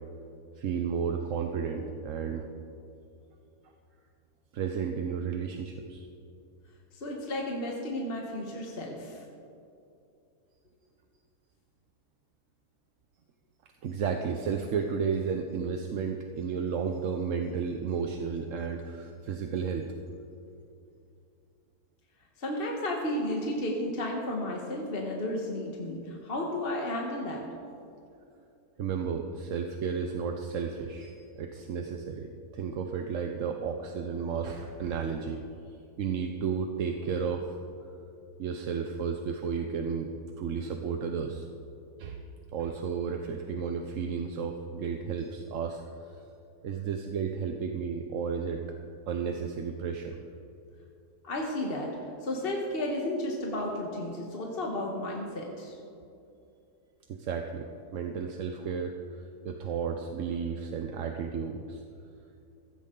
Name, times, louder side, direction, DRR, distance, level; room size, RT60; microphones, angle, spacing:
voice 1, 0.6-2.5 4.5-6.1 13.8-19.9 28.8-35.4 36.0-37.6 38.4-40.1 40.4-41.5 42.0-42.2 42.5-45.8 46.1-46.2 46.6-48.6 49.1-50.2 57.1-61.8, right 6 dB, 60° right, 4 dB, 1.0 m, -33 dB
voice 2, 6.9-9.2 22.4-27.4 51.2-55.8, left 1 dB, 40° left, -1 dB, 1.5 m, -33 dB
16.0 x 14.5 x 3.8 m, 2.6 s
omnidirectional pair, 1.7 m